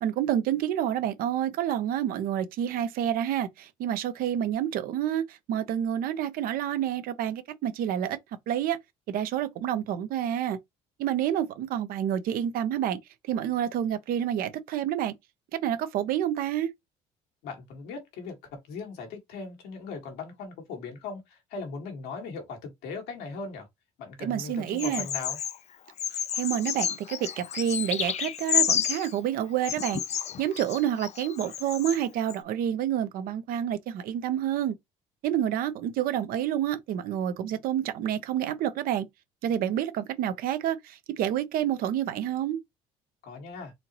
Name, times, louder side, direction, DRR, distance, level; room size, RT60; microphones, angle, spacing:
voice 1, 0.0-8.2 8.5-8.8 9.1-10.6 11.0-13.0 13.3-15.1 15.5-16.7 24.2-25.1 26.3-30.0 30.4-34.7 35.2-39.1 39.4-42.6, right 10 dB, 65° right, 0.8 m, -28 dB
voice 2, 17.4-23.7 24.0-25.4 43.2-43.7, left 4 dB, 80° left, 1.9 m, -39 dB
Bird vocalization bird call bird song, 24.8-25.6 26.0-29.1 29.6-32.0 32.3-32.4, left 9 dB, 45° left, 0.5 m, -30 dB
4.3 x 2.9 x 3.0 m
supercardioid pair, 85°, 16 cm